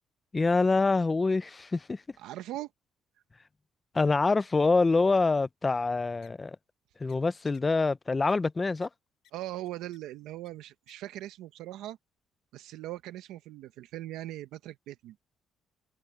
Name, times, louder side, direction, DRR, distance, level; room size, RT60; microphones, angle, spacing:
voice 1, 0.3-2.0 3.9-6.6 7.0-8.9, left 3 dB, 20° left, 0.5 m, -25 dB
voice 2, 2.2-2.7 9.3-12.0 12.5-15.2, right 15 dB, 85° right, 0.8 m, -40 dB
sound 1, 6.2-6.3 7.1-7.2 7.5-7.6 8.3-8.4 8.8-8.9 9.2-9.3 9.6-10.0 10.4-10.5 10.9-11.0, left 12 dB, 65° left, 7.6 m, -61 dB
cardioid pair, 135°, 0 cm